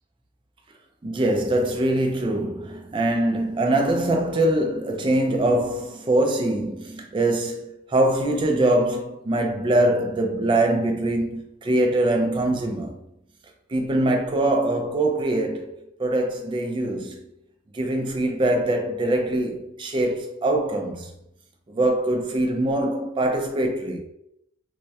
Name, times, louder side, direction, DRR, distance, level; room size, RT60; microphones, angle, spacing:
voice 1, 1.0-13.0 13.7-15.7 16.0-17.2 17.7-21.1 21.7-24.0, right 1 dB, 25° right, 0.3 m, -23 dB
2.2 x 2.1 x 2.7 m
head